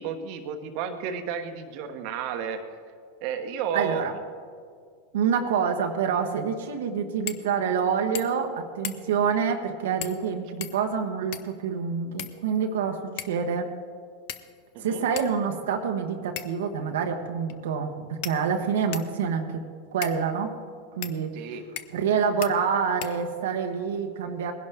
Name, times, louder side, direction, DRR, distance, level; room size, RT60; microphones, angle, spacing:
voice 1, 0.0-2.6 3.2-4.0 9.2-9.3 14.7-15.0 21.3-21.6, right 7 dB, 60° right, 6 dB, 1.1 m, -32 dB
voice 2, 3.7-4.2 5.1-13.7 14.8-19.6 19.9-20.5 21.0-21.3 21.9-24.5, right 6 dB, 80° right, 3 dB, 1.1 m, -27 dB
sound 1, 7.3-7.5 7.8-7.9 8.1-8.5 8.8-9.2 10.0-10.3 10.6-11.6 12.2-12.8 13.2-13.5 14.3-14.7 15.2-15.3 16.4-16.7 17.5-17.6 18.2-19.2 20.0-20.2 21.0-21.2 21.8-22.1 22.4-22.5 23.0-23.6, left 12 dB, 60° left, 0.7 m, -38 dB
20.0 x 11.0 x 3.5 m, 2.2 s
hypercardioid pair, 110°, 0 cm